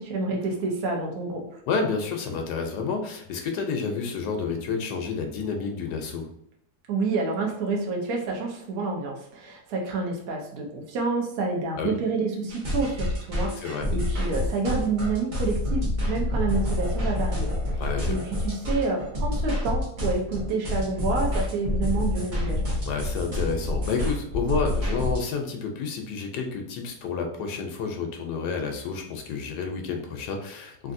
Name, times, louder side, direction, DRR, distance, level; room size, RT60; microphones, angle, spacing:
voice 1, 0.0-1.6 6.9-17.5 18.0-22.7, right 3 dB, 65° right, 0 dB, 1.2 m, -28 dB
voice 2, 1.7-6.3 11.7-12.0 13.6-13.9 17.8-18.2 22.9-30.9, left 5 dB, 80° left, 3 dB, 1.2 m, -30 dB
sound 1, 12.5-25.2, left 1 dB, 40° right, 0.8 m, -28 dB
3.3 x 2.6 x 2.5 m, 0.68 s
omnidirectional pair, 1.7 m